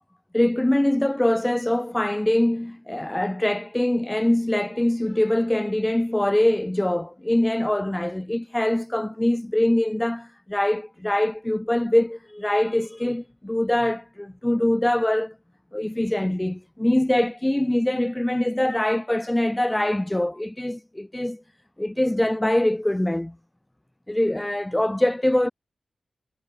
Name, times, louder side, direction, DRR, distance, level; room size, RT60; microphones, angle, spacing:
voice 1, 0.3-15.3 15.7-21.4 21.8-23.3 24.1-25.5, left 1 dB, 10° left, 4.6 m, -23 dB
wide cardioid pair, 155°, 0 cm